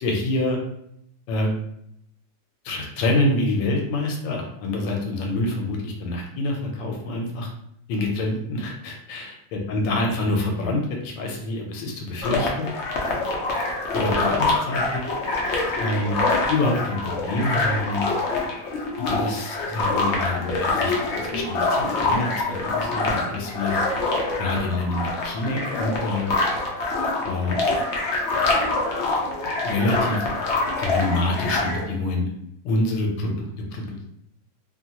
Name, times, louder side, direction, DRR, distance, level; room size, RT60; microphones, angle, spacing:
voice 1, 0.0-0.6 1.3-1.5 2.6-7.5 7.9-12.7 13.9-15.0 15.8-16.2 16.5-18.0 19.0-23.8 24.4-26.3 27.2-27.6 29.6-30.2 30.8-32.3 32.6-34.0, left 2 dB, 90° left, 1 dB, 1.3 m, -26 dB
sound 1, 12.2-31.9, left 3 dB, 70° left, 0.6 m, -25 dB
3.0 x 2.2 x 2.8 m, 0.74 s
omnidirectional pair, 1.9 m